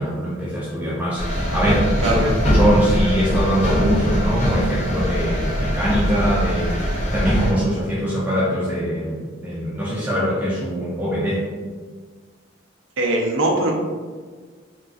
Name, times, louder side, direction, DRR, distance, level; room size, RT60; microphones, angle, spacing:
voice 1, 0.0-2.1 2.5-11.5, equal, 10° right, -8 dB, 0.4 m, -23 dB
sound 1, 1.2-7.5, equal, 40° left, 0.6 m, -21 dB
voice 2, 2.0-2.3 13.0-13.7, right 1 dB, 85° right, 0 dB, 0.5 m, -20 dB
3.5 x 2.3 x 2.4 m, 1.5 s
head